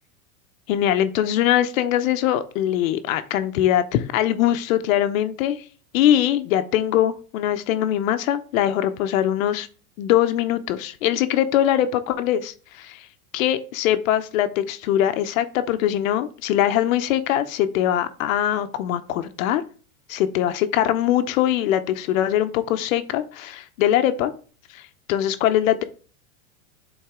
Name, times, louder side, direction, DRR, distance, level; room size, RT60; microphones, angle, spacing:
voice 1, 0.7-5.7 5.9-9.7 10.0-13.1 13.3-19.6 20.1-24.3 24.7-25.8, left 11 dB, 60° left, 10 dB, 0.7 m, -22 dB
8.7 x 4.0 x 3.6 m, 0.39 s
supercardioid pair, 140°, 45 cm